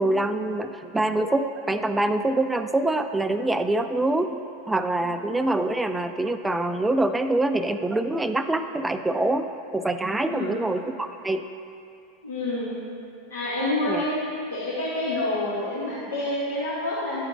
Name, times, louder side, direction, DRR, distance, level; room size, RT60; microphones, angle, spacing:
voice 1, 0.0-4.4 4.7-9.5 9.7-11.4 13.9-14.0, right 2 dB, 10° right, 8 dB, 0.3 m, -25 dB
voice 2, 10.2-10.6 12.2-12.7 13.3-14.2 14.5-17.2, left 1 dB, 80° left, -9 dB, 1.0 m, -28 dB
10.0 x 4.4 x 2.6 m, 2.5 s
hypercardioid pair, 85°, 0 cm